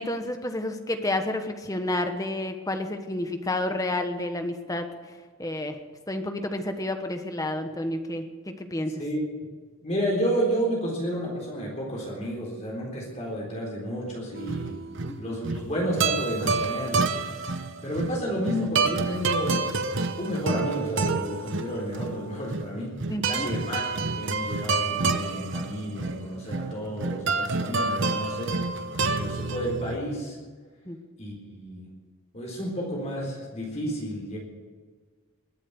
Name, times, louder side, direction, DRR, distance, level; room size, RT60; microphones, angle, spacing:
voice 1, 0.0-4.9 5.4-5.8 6.1-9.0 15.0-15.2 23.1-23.5 30.9-31.0, left 1 dB, 15° left, 6 dB, 1.2 m, -30 dB
voice 2, 9.8-14.7 15.2-17.2 17.8-19.7 20.2-23.0 23.2-28.6 29.1-30.4 31.2-31.9 32.3-34.4, equal, 30° left, -3 dB, 3.8 m, -31 dB
sound 1, 14.4-30.0, right 3 dB, 60° right, 0.9 m, -28 dB
21.0 x 8.5 x 6.9 m, 1.5 s
head